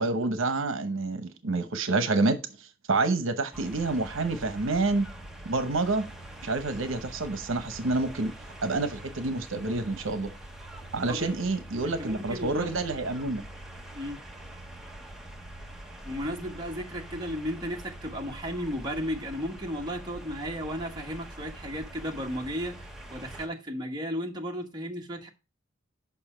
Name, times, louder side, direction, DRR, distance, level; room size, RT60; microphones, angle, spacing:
voice 1, 0.0-5.1 5.4-6.0 6.4-8.3 8.6-10.3 10.9-13.4, right 3 dB, 75° right, 0.9 m, -28 dB
sound 1, 3.5-23.5, right 1 dB, ahead, 0.9 m, -44 dB
voice 2, 11.1-11.4 11.8-12.8 13.9-14.2 16.0-25.3, equal, 20° right, 1.2 m, -34 dB
7.0 x 5.6 x 4.3 m
head